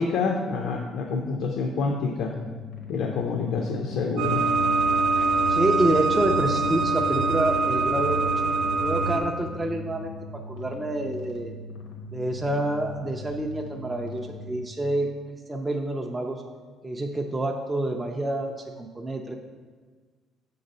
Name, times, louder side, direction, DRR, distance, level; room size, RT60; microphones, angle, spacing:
voice 1, 0.0-2.3 2.9-4.4, left 4 dB, 60° left, 1 dB, 0.5 m, -27 dB
sound 1, 2.5-14.6, left 2 dB, 90° left, 1.2 m, -40 dB
sound 2, 4.2-9.2, right 3 dB, 85° right, 0.7 m, -23 dB
voice 2, 5.2-8.3 8.8-11.5 12.1-15.1 15.5-16.4 16.8-19.3, right 1 dB, 10° right, 1 dB, 0.4 m, -28 dB
6.7 x 3.9 x 5.3 m, 1.5 s
cardioid pair, 165°, 0 cm